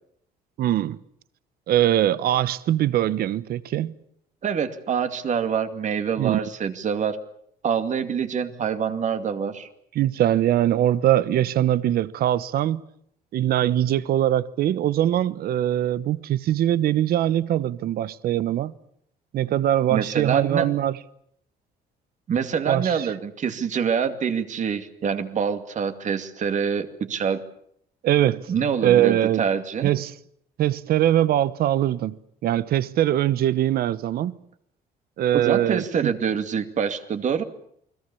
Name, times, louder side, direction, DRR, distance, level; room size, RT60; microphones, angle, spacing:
voice 1, 0.6-1.0 1.7-3.9 6.2-6.4 9.9-12.8 13.3-18.7 19.3-21.0 22.6-23.1 28.0-28.5 28.8-29.5 29.8-30.1 30.6-32.2 32.4-34.4 35.2-36.1, right 12 dB, 65° right, 1.0 m, -22 dB
voice 2, 4.4-7.2 7.6-9.7 19.9-20.7 22.3-27.4 28.5-29.9 35.3-37.4, right 7 dB, 45° right, 2.4 m, -25 dB
29.0 x 21.0 x 7.1 m
cardioid pair, 110°, 17 cm